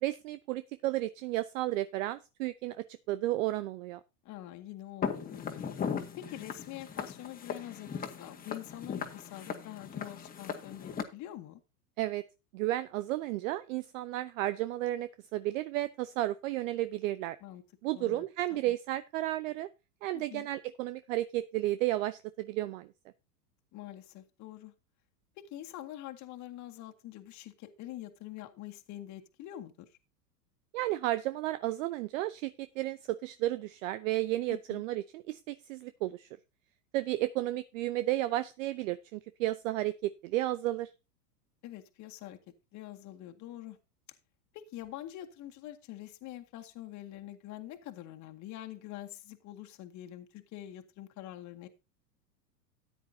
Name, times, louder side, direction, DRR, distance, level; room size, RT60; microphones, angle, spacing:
voice 1, 0.0-4.0 12.0-12.2 12.5-17.4 17.8-19.7 20.0-22.9 30.7-36.3 36.9-40.9, right 15 dB, 55° right, 14 dB, 0.8 m, -33 dB
voice 2, 4.2-5.8 6.2-11.6 17.4-17.6 17.9-18.3 18.5-18.7 20.1-20.5 23.7-24.7 25.4-30.0 34.5-34.8 41.6-42.4 42.7-43.8 44.5-51.7, left 13 dB, 35° left, 4 dB, 1.9 m, -45 dB
Walk footsteps, 5.0-11.0, left 7 dB, 15° left, 1.8 m, -38 dB
13.5 x 9.9 x 2.7 m, 0.27 s
hypercardioid pair, 115°, 48 cm